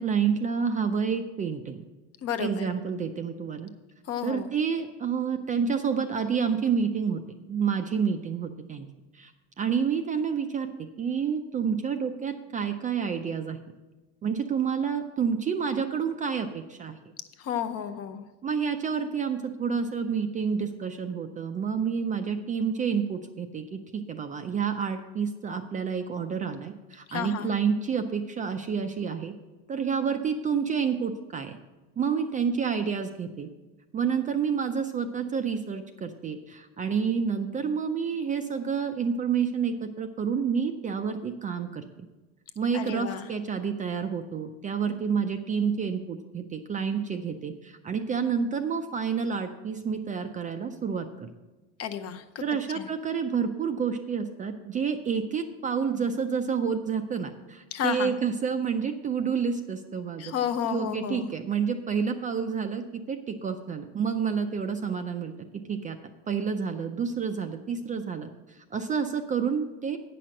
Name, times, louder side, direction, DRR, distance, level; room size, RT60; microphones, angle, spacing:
voice 1, 0.0-1.8 2.4-3.7 4.2-7.2 7.5-8.9 9.1-9.3 9.6-10.7 11.0-13.6 14.2-17.0 18.4-29.3 29.7-31.6 32.0-33.5 33.9-42.1 42.6-51.3 52.4-60.3 60.7-65.3 65.7-66.0 66.3-70.0, right 6 dB, 25° right, 7 dB, 0.4 m, -29 dB
voice 2, 2.2-2.7 4.1-4.5 17.4-18.2 27.1-27.6 42.7-43.3 51.8-52.4 52.8-52.9 57.7-58.1 60.2-61.3, left 9 dB, 45° left, 8 dB, 0.7 m, -31 dB
9.1 x 5.9 x 6.3 m, 1.2 s
cardioid pair, 150°, 34 cm